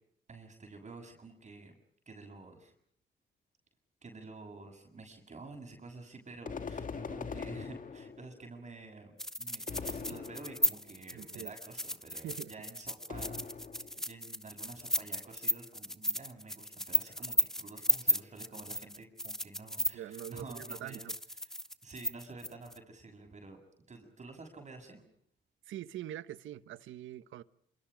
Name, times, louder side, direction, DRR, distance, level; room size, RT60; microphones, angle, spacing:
voice 1, 0.3-1.8 2.1-2.7 4.0-13.4 14.1-21.1 21.8-23.6 23.9-25.0, right 3 dB, 35° right, 7.1 m, -50 dB
sound 1, 6.5-8.4 9.7-10.9 13.1-14.1, left 5 dB, 40° left, 1.9 m, -42 dB
sound 2, 9.2-22.8, equal, ahead, 1.0 m, -34 dB
voice 2, 11.1-11.5 12.2-12.5 14.0-14.1 19.9-21.1 25.7-27.4, right 12 dB, 75° right, 1.2 m, -44 dB
27.5 x 27.0 x 5.2 m
cardioid pair, 90°, 20 cm